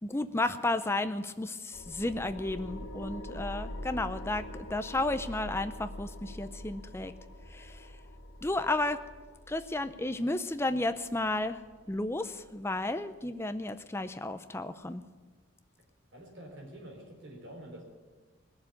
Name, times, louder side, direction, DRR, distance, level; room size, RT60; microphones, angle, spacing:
voice 1, 0.0-7.1 7.5-7.9 8.4-9.0 9.5-11.6 11.9-15.0, left 2 dB, 10° left, 10 dB, 0.5 m, -33 dB
sound 1, 1.7-12.8, left 1 dB, 90° left, 1.3 m, -44 dB
voice 2, 16.1-17.9, right 1 dB, 55° right, 1 dB, 4.0 m, -47 dB
19.5 x 7.2 x 9.2 m, 1.4 s
head